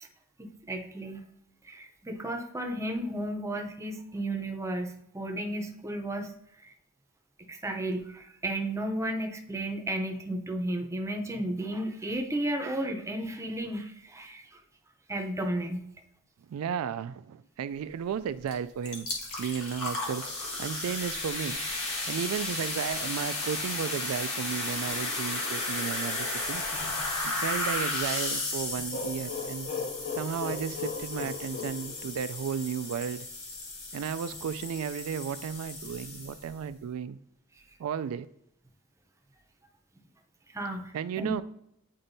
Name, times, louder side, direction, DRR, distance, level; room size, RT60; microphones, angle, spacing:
voice 1, 0.4-1.2 1.6-6.3 6.6-6.7 7.5-14.6 15.1-15.9 40.5-40.9 41.2-41.4, right 1 dB, 15° right, 4 dB, 0.6 m, -33 dB
voice 2, 16.5-19.1 19.4-21.6 22.1-26.6 27.2-29.7 30.2-33.3 33.9-37.2 37.8-38.3 40.9-41.4, right 7 dB, 85° right, 13 dB, 0.3 m, -34 dB
sound 1, 18.5-18.6 18.8-36.6, left 2 dB, 90° left, 1.4 m, -34 dB
sound 2, 28.9-32.6, left 5 dB, 55° left, 0.6 m, -37 dB
8.8 x 4.3 x 2.7 m, 0.74 s
head